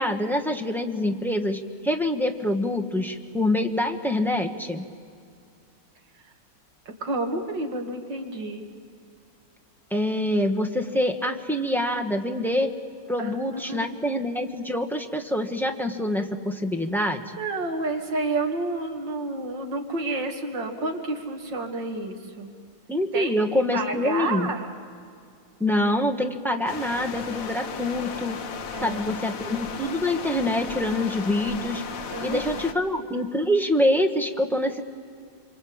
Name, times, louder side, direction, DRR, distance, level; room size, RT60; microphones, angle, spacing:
voice 1, 0.0-4.8 9.9-12.7 13.1-17.2 22.9-24.5 25.6-28.4 28.8-31.8 32.2-34.8, left 1 dB, ahead, 4 dB, 1.2 m, -25 dB
voice 2, 7.0-8.6 13.2-14.1 17.4-22.5 23.1-24.7 28.7-29.1 32.1-32.6, right 2 dB, 75° right, 3 dB, 3.1 m, -30 dB
sound 1, 26.6-32.7, left 5 dB, 50° left, 1.5 m, -35 dB
26.0 x 24.5 x 8.8 m, 2.3 s
omnidirectional pair, 2.0 m